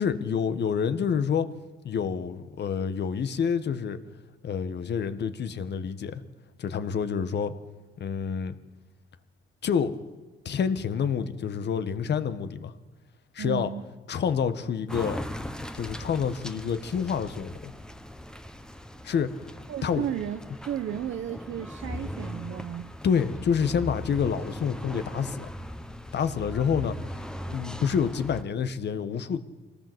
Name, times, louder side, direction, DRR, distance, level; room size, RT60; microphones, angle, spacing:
voice 1, 0.0-1.5 1.8-4.0 4.4-6.2 6.6-7.6 8.0-8.6 9.6-10.0 10.5-12.7 13.3-13.7 14.1-15.3 15.7-17.7 19.0-19.5 19.8-20.1 23.0-25.5 26.1-27.0 27.5-29.4, left 7 dB, 60° left, 11 dB, 1.7 m, -28 dB
voice 2, 13.4-13.8 19.7-22.9, right 10 dB, 70° right, 6 dB, 1.2 m, -33 dB
sound 1, 14.9-28.4, left 1 dB, 5° left, 1.3 m, -39 dB
25.5 x 18.0 x 8.2 m, 1.3 s
cardioid pair, 90°, 20 cm